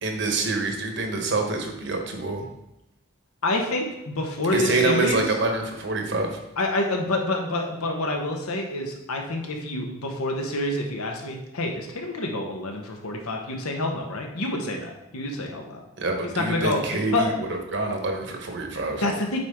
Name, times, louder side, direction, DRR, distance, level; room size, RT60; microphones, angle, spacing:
voice 1, 0.0-2.5 4.5-6.4 16.0-19.0, right 3 dB, 55° right, 3 dB, 1.1 m, -26 dB
voice 2, 3.4-5.2 6.6-15.8 16.4-16.8 17.1-17.3 19.0-19.4, left 2 dB, 90° left, 2 dB, 1.2 m, -27 dB
8.1 x 4.6 x 3.7 m, 0.92 s
head